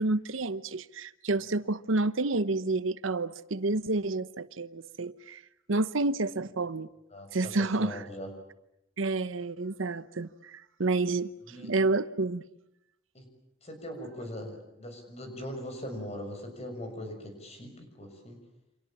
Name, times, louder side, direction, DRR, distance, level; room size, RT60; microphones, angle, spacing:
voice 1, 0.0-5.4 5.7-6.9 7.3-8.0 9.0-12.4, right 3 dB, 80° right, 15 dB, 1.0 m, -29 dB
voice 2, 7.1-8.3 11.5-11.7 13.1-13.3 13.6-18.4, left 1 dB, 35° left, 6 dB, 6.5 m, -41 dB
29.0 x 26.5 x 7.3 m, 0.82 s
head